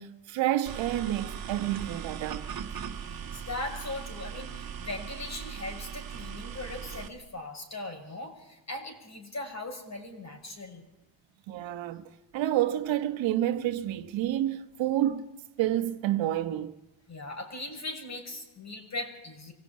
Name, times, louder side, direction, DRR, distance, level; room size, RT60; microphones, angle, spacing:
voice 1, 0.0-2.5 11.5-16.8, right 13 dB, 85° right, 1.4 m, -29 dB
sound 1, 0.7-7.1, right 7 dB, 50° right, 1.9 m, -39 dB
voice 2, 3.1-10.9 17.1-19.5, left 2 dB, 35° left, 6.3 m, -39 dB
25.5 x 16.5 x 8.8 m
cardioid pair, 75°, 44 cm